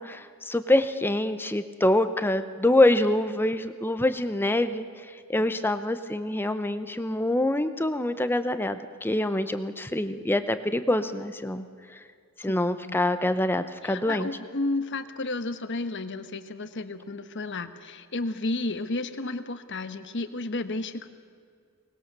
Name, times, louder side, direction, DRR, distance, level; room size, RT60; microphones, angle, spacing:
voice 1, 0.0-4.8 5.3-11.7 11.9-12.0 12.4-14.3, left 1 dB, 10° left, 10 dB, 0.7 m, -25 dB
voice 2, 12.5-13.0 13.8-21.1, left 2 dB, 60° left, 10 dB, 1.2 m, -32 dB
24.0 x 20.0 x 6.7 m, 2.2 s
head